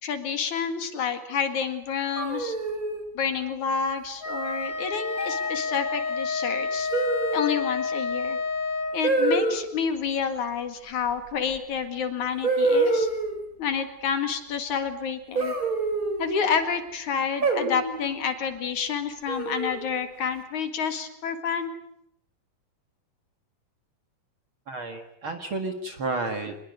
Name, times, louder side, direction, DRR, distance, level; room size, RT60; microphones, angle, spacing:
voice 1, 0.0-2.6 3.1-6.9 7.3-8.4 8.9-13.1 13.6-15.5 16.2-21.7, left 6 dB, 60° left, 9 dB, 3.1 m, -29 dB
sound 1, 2.2-3.0 4.3-4.7 5.1-5.5 6.9-7.6 9.0-9.6 11.6-11.7 12.4-13.4 15.4-16.4 17.4-18.1 19.3-19.9, right 3 dB, 25° right, 4.5 m, -26 dB
Wind instrument woodwind instrument, 4.2-9.0, left 4 dB, 15° left, 2.1 m, -29 dB
voice 2, 24.7-26.6, right 2 dB, 45° right, 6 dB, 2.1 m, -31 dB
25.0 x 21.5 x 9.5 m, 0.76 s
omnidirectional pair, 4.1 m